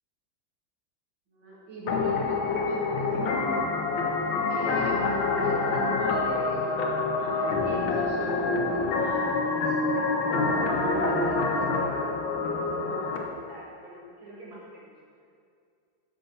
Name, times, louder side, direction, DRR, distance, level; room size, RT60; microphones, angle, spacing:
voice 1, 1.3-3.7 4.5-5.0 5.4-6.8 7.2-10.0 10.5-12.1 12.7-15.0, right 1 dB, 80° right, -7 dB, 2.9 m, -43 dB
sound 1, 1.9-13.2, left 3 dB, 90° left, 1.6 m, -26 dB
6.6 x 5.2 x 5.6 m, 2.3 s
omnidirectional pair, 2.0 m